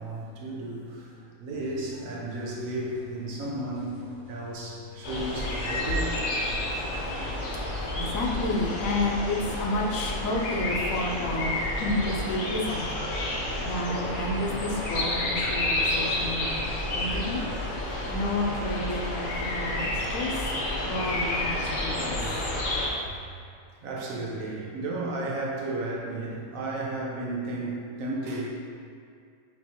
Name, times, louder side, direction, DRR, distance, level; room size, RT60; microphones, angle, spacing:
voice 1, 0.0-6.4 7.3-7.4 12.7-12.8 16.2-16.4 18.9-19.0 19.7-20.2 20.8-21.1 22.1-22.5 23.8-28.5, right 2 dB, 70° right, -3 dB, 1.1 m, -34 dB
sound 1, 1.5-17.7, left 2 dB, 35° right, 1.2 m, -43 dB
sound 2, 5.0-22.9, left 1 dB, 50° left, 0.7 m, -30 dB
voice 2, 7.9-16.7 16.9-17.4 18.1-20.5 20.8-22.2, left 2 dB, 70° left, -2 dB, 1.0 m, -31 dB
5.4 x 3.0 x 2.9 m, 2.2 s
omnidirectional pair, 1.5 m